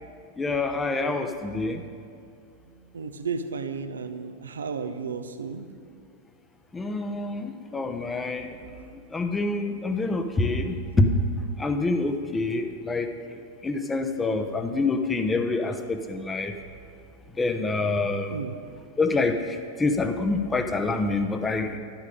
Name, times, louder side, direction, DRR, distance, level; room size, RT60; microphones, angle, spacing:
voice 1, 0.4-1.8 6.7-8.6 9.1-11.1 11.6-13.1 13.6-16.5 17.4-18.4 19.0-19.4 19.8-21.7, left 3 dB, 15° left, 7 dB, 0.9 m, -26 dB
voice 2, 2.9-5.7 18.3-18.5, right 5 dB, 70° right, 9 dB, 0.8 m, -33 dB
12.0 x 12.0 x 5.3 m, 2.4 s
figure-of-eight pair, 90°, 0 cm